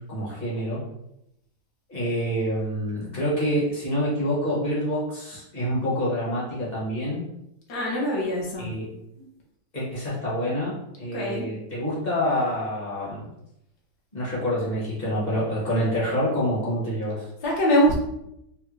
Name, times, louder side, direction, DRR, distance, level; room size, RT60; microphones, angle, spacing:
voice 1, 0.1-0.8 1.9-7.2 8.6-8.9 9.7-13.3 14.1-17.3, equal, 30° left, -7 dB, 0.8 m, -27 dB
voice 2, 7.7-8.7 11.1-11.4 17.4-18.0, equal, 65° left, -3 dB, 1.3 m, -23 dB
3.6 x 2.1 x 3.0 m, 0.82 s
omnidirectional pair, 2.0 m